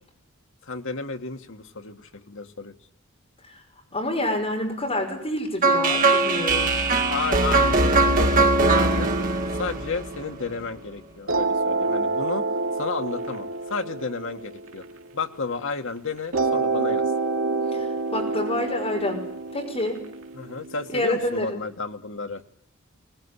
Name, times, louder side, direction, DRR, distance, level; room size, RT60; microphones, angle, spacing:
voice 1, 0.6-2.7 7.1-9.1 9.6-12.5 12.8-14.8 15.1-17.0 20.3-22.4, left 4 dB, 65° left, 6 dB, 1.8 m, -32 dB
voice 2, 3.9-6.7 17.7-17.9 18.1-19.2 19.5-20.0 20.9-21.6, left 1 dB, 30° left, 2 dB, 5.5 m, -27 dB
sound 1, 5.6-10.6, right 3 dB, 40° right, 2.0 m, -21 dB
sound 2, 11.3-15.7 16.3-21.3, right 3 dB, 75° right, 2.8 m, -28 dB
21.0 x 20.0 x 9.9 m, 0.68 s
head